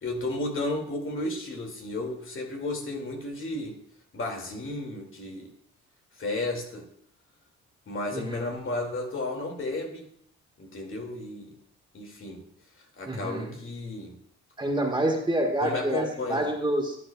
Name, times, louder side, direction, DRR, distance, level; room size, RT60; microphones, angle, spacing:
voice 1, 0.0-3.8 4.1-5.5 6.2-6.9 7.9-10.1 10.6-11.6 11.9-12.4 13.0-14.2 15.6-16.5, left 2 dB, 40° left, 2 dB, 2.1 m, -33 dB
voice 2, 8.1-8.5 13.1-13.5 14.6-17.0, right 1 dB, 15° right, 2 dB, 1.4 m, -27 dB
12.0 x 9.8 x 2.2 m, 0.70 s
cardioid pair, 90°, 30 cm